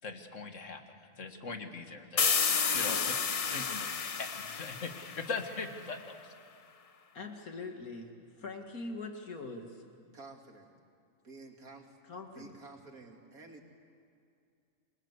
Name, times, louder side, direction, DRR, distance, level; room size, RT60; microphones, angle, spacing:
voice 1, 0.0-2.2 2.7-3.0 3.5-3.9 4.2-6.3, left 4 dB, 60° left, 6 dB, 2.1 m, -41 dB
sound 1, 2.2-5.8, left 6 dB, 40° left, 0.5 m, -31 dB
voice 2, 7.1-9.8 12.1-12.5, left 3 dB, 90° left, 4 dB, 2.5 m, -43 dB
voice 3, 10.1-10.7 11.2-12.0 12.2-13.6, right 3 dB, 90° right, 2 dB, 3.0 m, -51 dB
27.5 x 21.5 x 8.2 m, 2.4 s
omnidirectional pair, 1.5 m